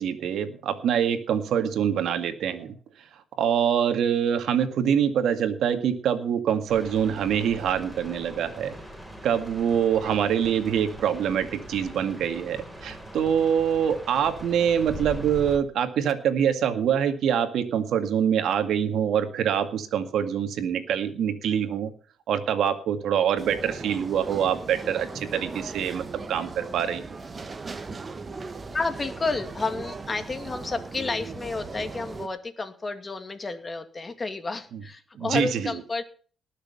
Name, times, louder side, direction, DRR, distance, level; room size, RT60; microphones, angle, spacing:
voice 1, 0.0-2.8 3.4-8.7 9.2-21.9 22.3-27.0 35.2-35.7, right 8 dB, 75° right, 9 dB, 2.0 m, -25 dB
sound 1, 6.7-15.6, equal, ahead, 7.6 m, -41 dB
sound 2, 23.4-32.3, right 4 dB, 30° right, 1.5 m, -38 dB
voice 2, 28.7-36.0, left 3 dB, 30° left, 8 dB, 2.3 m, -31 dB
19.0 x 6.8 x 5.6 m, 0.41 s
cardioid pair, 90°, 0 cm